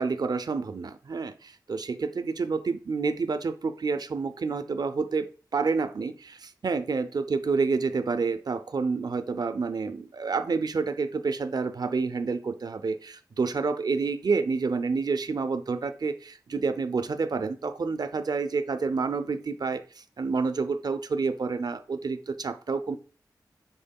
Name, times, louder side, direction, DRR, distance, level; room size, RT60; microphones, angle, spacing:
voice 1, 0.0-23.0, right 4 dB, 60° right, 10 dB, 0.4 m, -29 dB
5.2 x 3.7 x 2.2 m, 0.37 s
cardioid pair, 55°, 8 cm